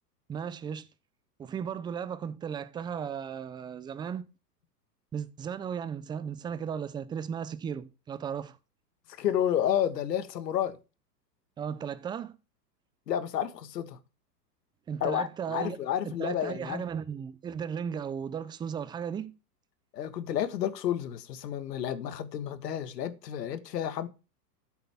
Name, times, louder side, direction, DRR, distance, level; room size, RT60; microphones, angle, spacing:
voice 1, 0.3-0.9 1.4-4.2 5.1-8.6 11.6-12.4 14.9-15.8 16.0-19.3, right 7 dB, 10° right, 0.5 m, -35 dB
voice 2, 9.2-10.8 13.1-14.0 15.0-16.8 19.9-24.1, left 10 dB, 75° left, 1.7 m, -30 dB
13.5 x 8.1 x 3.6 m
hypercardioid pair, 120°, 49 cm